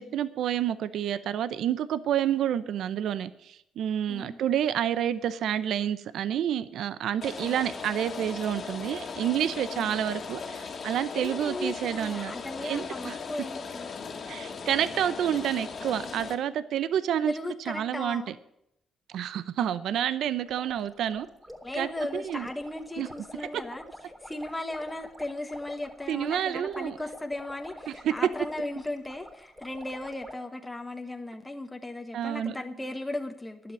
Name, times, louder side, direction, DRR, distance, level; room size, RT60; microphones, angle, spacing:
voice 1, 0.0-13.1 14.3-17.3 17.7-18.2 19.1-21.3 21.8-22.4 23.0-23.1 26.1-27.0 27.9-28.1 32.1-32.5, right 10 dB, 75° right, 15 dB, 0.7 m, -29 dB
voice 2, 4.1-4.4 7.4-7.6 9.7-10.0 11.1-13.9 17.2-18.3 21.6-23.8 24.2-33.7, left 2 dB, 10° left, 4 dB, 1.3 m, -36 dB
Rain, 7.2-16.3, left 5 dB, 50° left, 2.0 m, -38 dB
sound 1, 20.4-30.4, left 1 dB, 10° right, 3.2 m, -47 dB
11.5 x 7.9 x 10.0 m, 0.78 s
cardioid pair, 90°, 0 cm